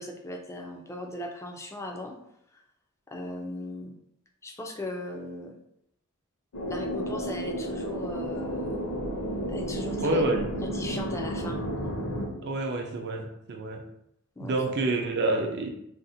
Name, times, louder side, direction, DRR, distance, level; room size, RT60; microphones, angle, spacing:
voice 1, 0.0-2.2 2.5-2.6 3.1-3.9 4.4-5.6 6.7-8.8 9.5-10.2 10.6-11.6 14.4-14.8, left 1 dB, 15° left, 2 dB, 0.3 m, -38 dB
sound 1, 6.5-12.3, equal, 70° left, 0.6 m, -32 dB
voice 2, 10.0-10.5 12.4-13.8 14.4-15.7, right 2 dB, 50° right, 3 dB, 0.5 m, -28 dB
2.6 x 2.1 x 3.8 m, 0.78 s
head